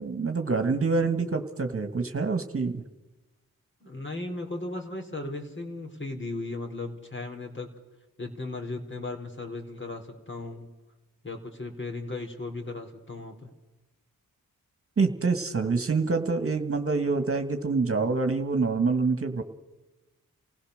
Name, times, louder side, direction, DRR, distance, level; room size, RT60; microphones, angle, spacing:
voice 1, 0.0-2.8 15.0-19.4, right 4 dB, 40° right, 7 dB, 1.9 m, -26 dB
voice 2, 3.8-7.7 8.2-10.7 11.2-13.5, left 2 dB, 35° left, 3 dB, 4.3 m, -36 dB
28.5 x 16.5 x 6.6 m, 1.1 s
cardioid pair, 55°, 35 cm